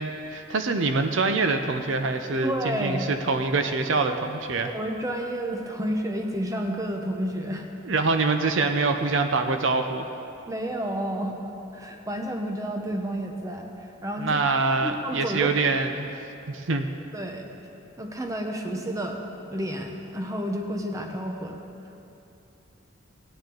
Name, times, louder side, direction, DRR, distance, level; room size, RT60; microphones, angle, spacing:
voice 1, 0.0-4.7 7.8-10.1 14.2-16.1 16.5-16.9, right 3 dB, 65° right, 7 dB, 0.6 m, -25 dB
voice 2, 2.4-3.1 4.7-7.7 10.5-11.3 11.7-14.4 14.8-15.6 17.1-17.5 18.0-19.2 19.5-21.6, equal, 15° right, 2 dB, 0.8 m, -30 dB
17.0 x 9.6 x 3.9 m, 2.8 s
head